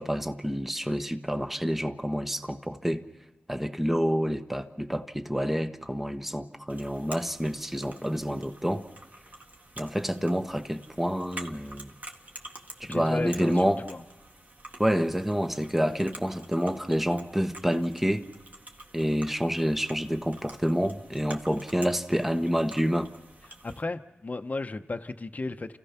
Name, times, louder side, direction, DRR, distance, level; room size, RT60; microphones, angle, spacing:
voice 1, 0.0-3.0 3.5-8.8 9.8-11.9 12.8-13.8 14.8-18.3 18.9-23.1, equal, 5° right, 1.1 m, -28 dB
sound 1, 6.7-23.8, right 2 dB, 40° right, 1.8 m, -48 dB
voice 2, 12.8-14.0 23.6-25.8, left 3 dB, 40° left, 0.9 m, -34 dB
29.0 x 15.5 x 5.8 m
cardioid pair, 60°, 4 cm